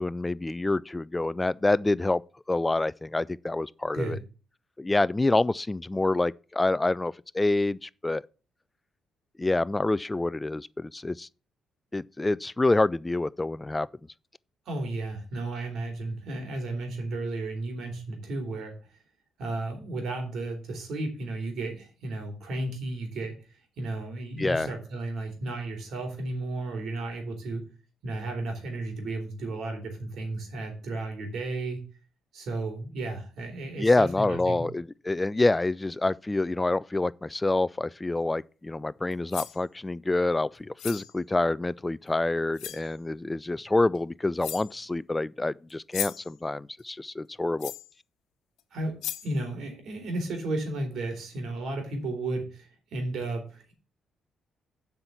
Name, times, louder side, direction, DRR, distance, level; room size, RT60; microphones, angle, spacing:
voice 1, 0.0-2.2 2.5-4.2 4.8-8.2 9.4-11.3 11.9-13.9 24.4-24.7 33.8-47.7, left 2 dB, 15° left, 0.4 m, -27 dB
voice 2, 14.7-18.7 19.4-27.6 28.0-31.8 32.3-34.6 48.7-49.0 49.2-53.7, right 2 dB, 70° right, 3.9 m, -33 dB
sound 1, 39.1-39.6 40.8-41.1 42.1-42.2 42.6-42.9 43.9-44.0 44.4-44.8 45.7-46.3 47.6-47.9 48.6-48.7 49.0-49.4, left 12 dB, 90° left, 1.0 m, -36 dB
7.8 x 5.9 x 7.0 m
cardioid pair, 90°, 0 cm